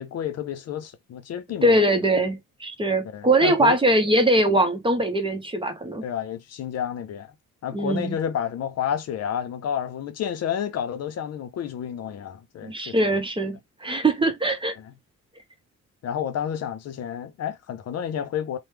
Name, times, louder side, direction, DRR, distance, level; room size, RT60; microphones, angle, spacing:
voice 1, 0.0-1.8 3.0-3.8 6.0-7.3 7.6-13.2 14.8-14.9 16.0-18.6, left 9 dB, 55° left, 0.6 m, -30 dB
voice 2, 1.6-6.0 7.7-8.2 12.6-14.7, right 1 dB, 15° right, 0.8 m, -22 dB
3.0 x 2.2 x 3.3 m
cardioid pair, 90°, 30 cm